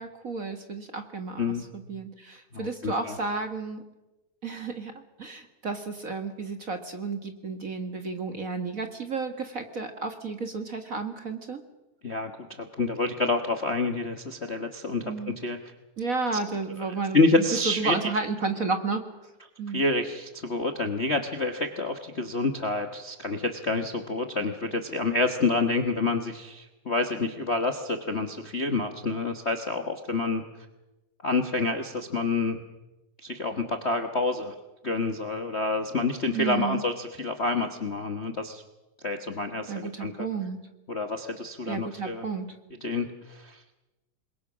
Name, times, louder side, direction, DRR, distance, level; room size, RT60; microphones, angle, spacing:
voice 1, 0.0-3.8 4.4-4.9 5.2-11.6 15.0-15.3 16.0-19.3 19.6-19.8 36.3-36.8 39.7-40.6 41.7-42.5, right 4 dB, 40° right, 6 dB, 1.3 m, -32 dB
voice 2, 2.5-3.2 12.0-12.3 12.6-15.6 17.1-18.0 19.7-30.4 31.2-32.6 33.2-34.5 34.8-38.6 39.0-40.3 40.9-42.2 42.8-43.6, left 3 dB, 70° left, 5 dB, 0.6 m, -28 dB
27.0 x 22.0 x 6.3 m, 1.0 s
omnidirectional pair, 3.5 m